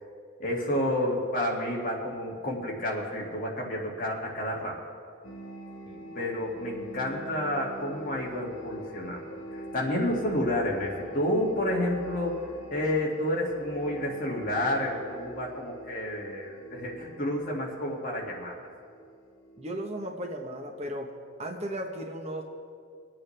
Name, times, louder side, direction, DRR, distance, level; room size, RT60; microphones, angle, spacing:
voice 1, 0.4-4.8 6.1-18.5, left 1 dB, 40° left, -3 dB, 2.1 m, -30 dB
sound 1, 5.2-20.7, right 1 dB, 65° left, 1.9 m, -45 dB
voice 2, 19.6-21.1 21.4-22.4, right 1 dB, 30° right, 2 dB, 0.9 m, -36 dB
24.0 x 8.7 x 3.3 m, 2.3 s
head